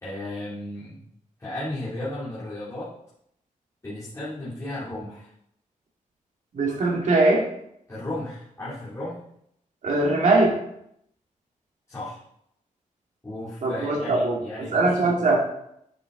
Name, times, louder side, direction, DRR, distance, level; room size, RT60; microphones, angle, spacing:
voice 1, 0.0-1.0 1.4-2.9 3.8-5.3 7.9-9.2 11.9-12.2 13.2-15.1, left 1 dB, 20° left, -12 dB, 3.1 m, -34 dB
voice 2, 6.5-7.4 9.8-10.6 13.6-14.4 14.7-15.4, right 2 dB, 65° right, -2 dB, 2.6 m, -21 dB
10.5 x 7.0 x 4.0 m, 0.74 s
wide cardioid pair, 170°, 14 cm